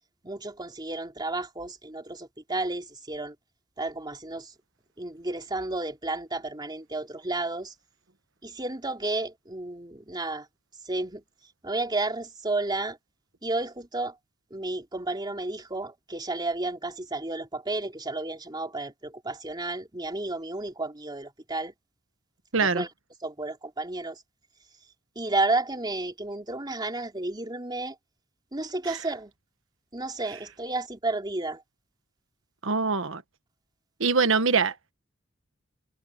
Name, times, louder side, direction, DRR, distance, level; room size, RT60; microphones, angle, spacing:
voice 1, 0.2-3.4 3.8-4.5 5.0-7.7 8.4-10.5 10.9-11.2 11.6-13.0 13.4-14.1 14.5-21.7 22.6-22.9 23.2-24.2 25.2-28.0 28.5-29.3 29.9-31.6, right 2 dB, 20° right, 3.5 m, -32 dB
voice 2, 22.5-22.8 28.9-29.0 32.6-33.2 34.0-34.9, right 4 dB, 70° right, 1.4 m, -24 dB
head